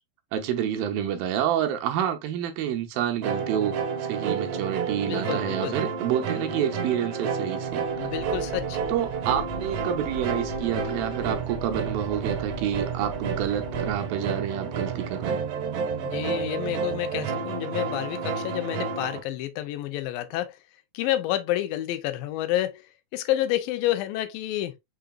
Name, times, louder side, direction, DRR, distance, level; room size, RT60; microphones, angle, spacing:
voice 1, 0.3-8.1 8.9-15.4, right 10 dB, 85° right, 2.6 m, -28 dB
sound 1, 3.2-19.2, right 6 dB, 70° right, 2.1 m, -30 dB
voice 2, 5.0-5.8 8.0-8.8 16.0-20.6 20.9-22.9 23.1-24.8, left 14 dB, 85° left, 2.3 m, -29 dB
sound 2, 7.7-13.9, left 1 dB, 50° left, 1.2 m, -41 dB
5.8 x 3.9 x 2.3 m
omnidirectional pair, 4.1 m